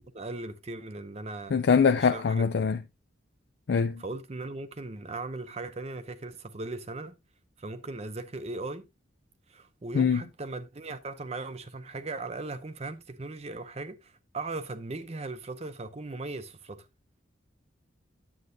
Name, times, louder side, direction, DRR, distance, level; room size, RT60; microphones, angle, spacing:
voice 1, 0.1-1.6 2.0-2.5 4.0-7.2 7.6-8.9 9.5-16.9, right 3 dB, 35° right, 0.6 m, -38 dB
voice 2, 1.5-2.8 3.7-4.0 9.9-10.2, left 6 dB, 60° left, 0.4 m, -23 dB
9.5 x 7.8 x 2.6 m
head